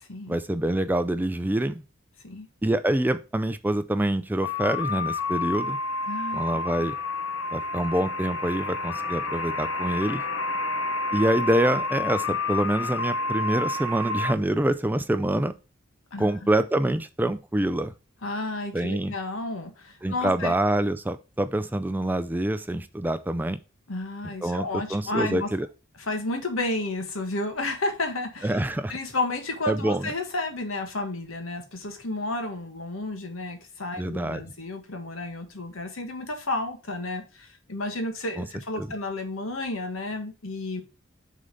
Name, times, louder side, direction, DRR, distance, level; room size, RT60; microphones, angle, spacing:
voice 1, 0.3-1.8 2.6-5.8 6.3-7.0 7.5-10.3 11.1-15.5 16.2-17.9 18.7-19.1 20.0-23.6 24.4-25.7 28.4-28.9 29.7-30.1 34.0-34.4 38.4-38.5 38.8-38.9, right 1 dB, 10° right, 0.4 m, -26 dB
sound 1, 4.4-14.3, left 3 dB, 70° left, 0.9 m, -29 dB
voice 2, 6.1-6.6 16.1-16.5 18.2-20.5 23.9-25.5 26.1-28.5 28.9-40.8, left 2 dB, 85° left, 1.6 m, -32 dB
6.5 x 3.8 x 5.2 m
head